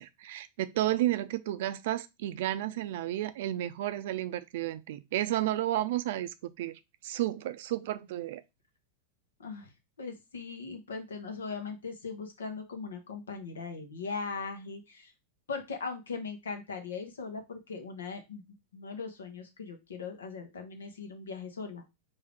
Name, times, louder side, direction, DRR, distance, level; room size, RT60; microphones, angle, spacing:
voice 1, 0.0-6.7 7.0-8.4, right 14 dB, 65° right, 0.4 m, -32 dB
voice 2, 9.4-9.7 10.0-15.1 15.5-18.4 18.7-21.8, left 4 dB, 85° left, 1.0 m, -39 dB
4.8 x 2.7 x 3.4 m
hypercardioid pair, 100°, 0 cm